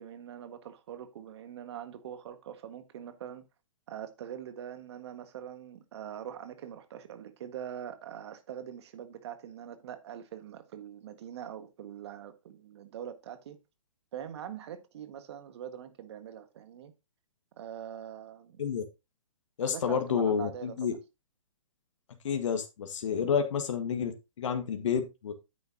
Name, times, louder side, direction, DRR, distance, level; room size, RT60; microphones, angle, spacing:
voice 1, 0.0-3.4 3.9-13.6 14.1-16.9 17.6-18.6 19.6-20.9, right 9 dB, 55° right, 1.7 m, -43 dB
voice 2, 19.6-20.9 22.2-25.3, left 7 dB, 60° left, 1.7 m, -30 dB
9.5 x 8.2 x 2.8 m
hypercardioid pair, 135°, 17 cm